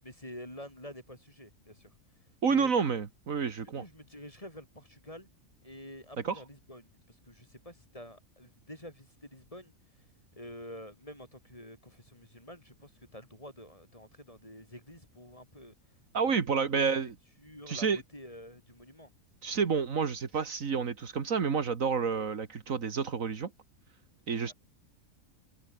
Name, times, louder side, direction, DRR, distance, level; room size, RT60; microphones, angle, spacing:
voice 1, 0.0-1.9 2.5-2.7 3.7-5.3 5.6-9.7 10.4-15.7 16.7-16.8 17.4-19.1 24.4-24.5, left 1 dB, 25° left, 7.7 m, -48 dB
voice 2, 2.4-3.8 6.2-6.4 16.1-17.1 17.7-18.0 19.4-23.5 24.3-24.5, right 6 dB, 70° right, 2.0 m, -29 dB
omnidirectional pair, 1.5 m